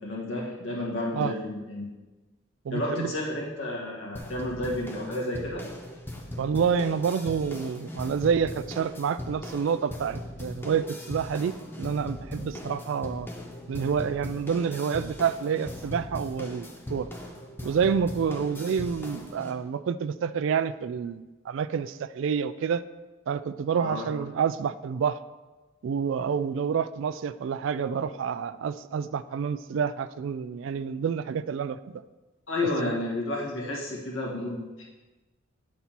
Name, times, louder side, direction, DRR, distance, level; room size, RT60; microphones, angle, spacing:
voice 1, 0.0-1.8 2.7-5.7 23.7-24.1 32.5-34.8, left 1 dB, 70° left, -4 dB, 2.2 m, -31 dB
voice 2, 2.7-3.1 6.4-13.3 13.7-17.1 17.6-22.8 23.3-25.2 25.8-32.0, right 6 dB, 65° right, 13 dB, 0.3 m, -28 dB
sound 1, 4.2-19.5, left 1 dB, 10° left, 0.7 m, -39 dB
8.3 x 4.2 x 5.9 m, 1.2 s
head